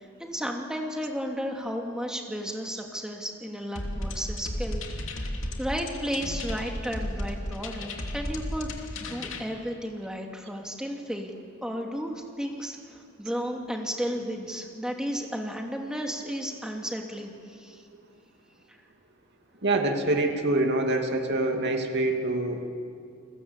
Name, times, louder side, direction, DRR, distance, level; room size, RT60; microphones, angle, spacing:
voice 1, 0.0-5.3 5.6-8.7 9.0-17.8, equal, 5° right, 1 dB, 2.7 m, -33 dB
sound 1, 3.8-9.4, left 1 dB, 65° left, 2.9 m, -34 dB
voice 2, 19.6-22.7, right 2 dB, 55° right, 3 dB, 2.6 m, -25 dB
29.5 x 21.5 x 8.3 m, 2.4 s
head